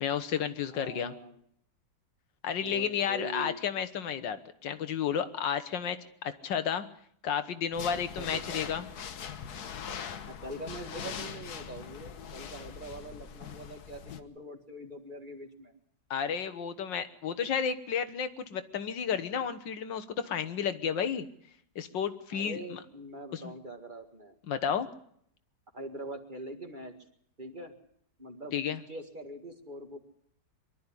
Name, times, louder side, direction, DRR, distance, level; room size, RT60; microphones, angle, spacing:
voice 1, 0.0-1.1 2.4-6.9 7.2-8.9 16.1-21.3 21.8-22.8 23.3-23.4 24.5-24.9 28.5-28.8, left 8 dB, 85° left, 11 dB, 1.8 m, -32 dB
voice 2, 0.7-1.4 2.6-3.6 7.9-8.7 10.3-15.7 22.3-24.3 25.7-27.0 27.4-27.7 28.2-28.6 28.9-30.0, right 1 dB, 25° right, 5 dB, 1.9 m, -43 dB
sound 1, 7.7-14.2, left 7 dB, 60° left, 1.5 m, -41 dB
23.5 x 12.0 x 9.9 m, 0.68 s
omnidirectional pair, 1.9 m